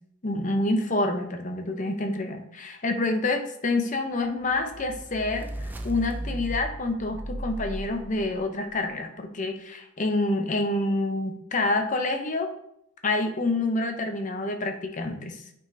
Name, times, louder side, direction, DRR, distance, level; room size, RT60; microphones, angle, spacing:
voice 1, 0.2-12.5 13.0-15.4, left 2 dB, 40° left, 5 dB, 0.7 m, -27 dB
sound 1, 4.5-8.7, right 1 dB, 10° right, 0.4 m, -36 dB
9.0 x 4.6 x 2.7 m, 0.73 s
head